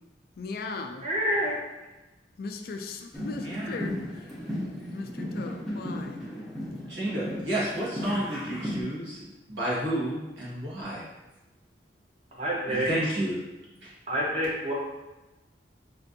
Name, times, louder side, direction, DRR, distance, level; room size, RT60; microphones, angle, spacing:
voice 1, 0.4-1.0 2.4-3.9 4.9-5.1 5.3-6.2, left 3 dB, 55° left, 0.3 m, -37 dB
voice 2, 1.0-1.6 12.4-12.9 14.1-14.7, equal, 35° right, 0.8 m, -27 dB
sound 1, 3.1-8.8, left 1 dB, ahead, 0.6 m, -35 dB
voice 3, 3.4-3.9 6.9-11.0 12.7-13.3 13.8-13.9, right 1 dB, 80° right, 1.3 m, -31 dB
4.3 x 2.5 x 2.6 m
head